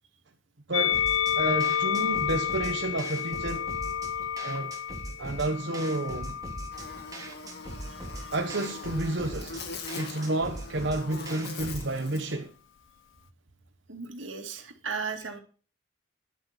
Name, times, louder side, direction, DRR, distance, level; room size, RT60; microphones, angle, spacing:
Musical instrument, 0.7-7.1 8.0-9.0, left 9 dB, 85° left, 0.5 m, -30 dB
voice 1, 0.7-1.0 1.4-3.6 4.4-4.7 5.2-6.4 8.3-9.6 9.9-12.5, right 2 dB, 65° right, 1.2 m, -30 dB
sound 1, 0.9-11.9, right 1 dB, 20° right, 3.4 m, -41 dB
Buzz, 6.7-12.3, left 4 dB, 60° left, 2.4 m, -42 dB
voice 2, 13.9-15.4, right 5 dB, 85° right, 2.5 m, -35 dB
11.0 x 10.5 x 4.4 m
head